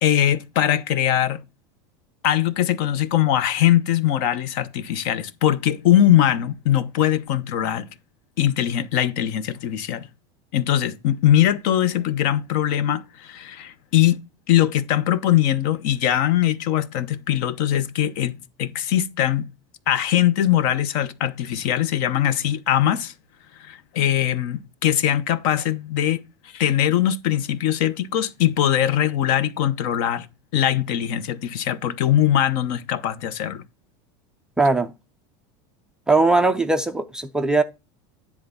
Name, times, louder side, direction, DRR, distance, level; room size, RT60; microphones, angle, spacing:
voice 1, 0.0-1.4 2.2-7.9 8.4-10.1 10.5-14.2 14.5-19.5 19.9-23.1 23.6-30.3 30.5-33.6, left 11 dB, 50° left, 0.7 m, -21 dB
voice 2, 34.6-34.9 36.1-37.6, right 3 dB, 5° right, 0.3 m, -19 dB
10.0 x 3.5 x 5.4 m
supercardioid pair, 170°, 14 cm